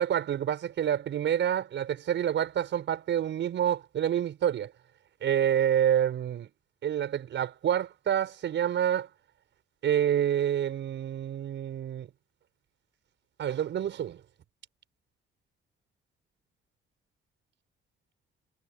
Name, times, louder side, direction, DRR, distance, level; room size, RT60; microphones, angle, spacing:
voice 1, 0.0-4.7 5.2-6.5 6.8-9.1 9.8-12.1 13.4-14.2, right 10 dB, 70° right, 5.2 m, -28 dB
cardioid pair, 90°, 20 cm